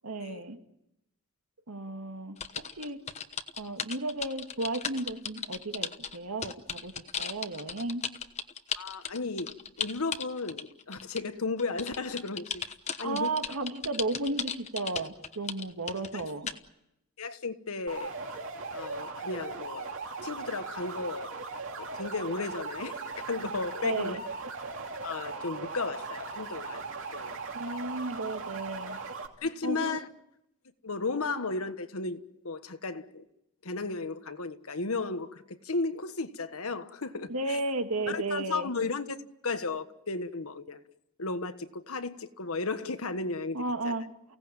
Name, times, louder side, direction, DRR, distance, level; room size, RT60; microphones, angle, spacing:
voice 1, 0.0-0.6 1.7-3.0 3.6-6.9 7.2-8.0 13.0-16.5 23.7-24.2 27.5-29.0 29.6-30.0 37.3-38.7 43.5-44.4, right 2 dB, 85° right, 2.2 m, -34 dB
sound 1, 2.4-11.3 11.6-16.6, left 7 dB, 30° left, 1.1 m, -36 dB
voice 2, 8.8-9.5 9.8-12.6 13.0-13.3 17.2-18.1 18.7-19.9 20.2-21.4 21.7-24.2 25.0-26.8 27.1-27.4 29.4-30.1 30.8-33.3 33.6-37.6 38.1-39.2 39.4-40.8 41.2-44.0, left 3 dB, 75° left, 1.4 m, -34 dB
sound 2, 17.9-29.3, right 4 dB, 60° right, 2.8 m, -39 dB
29.5 x 17.5 x 9.0 m
head